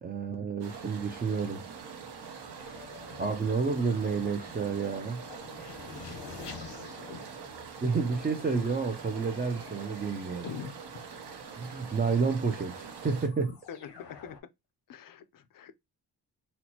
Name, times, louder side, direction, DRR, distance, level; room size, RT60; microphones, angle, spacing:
voice 1, 0.0-1.6 3.2-5.2 7.8-10.5 11.6-13.5, right 5 dB, 25° right, 0.4 m, -30 dB
sound 1, 0.6-13.3, right 6 dB, 75° right, 0.9 m, -44 dB
sound 2, 2.6-10.8 11.9-12.0 12.4-14.4, left 6 dB, 85° left, 0.9 m, -49 dB
voice 2, 13.7-14.4 14.9-15.7, left 8 dB, 55° left, 0.5 m, -43 dB
4.2 x 2.0 x 2.8 m
wide cardioid pair, 165°, 40 cm